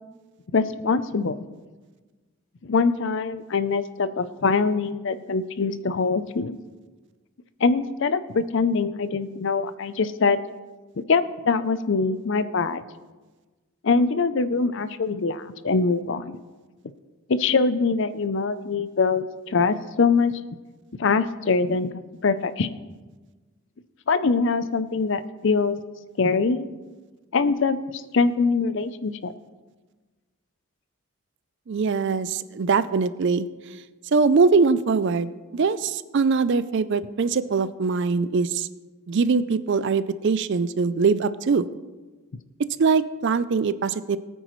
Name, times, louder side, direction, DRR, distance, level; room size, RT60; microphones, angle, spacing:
voice 1, 0.5-1.3 2.6-6.6 7.6-10.4 11.0-12.8 13.8-16.4 17.3-20.3 21.0-21.9 22.2-22.7 24.1-25.8 26.2-26.7 27.3-29.3, left 4 dB, 55° left, 14 dB, 0.5 m, -23 dB
voice 2, 31.7-33.5 34.1-38.7 39.1-41.7 42.8-44.2, right 4 dB, 55° right, 15 dB, 0.4 m, -22 dB
19.0 x 9.0 x 3.1 m, 1.3 s
head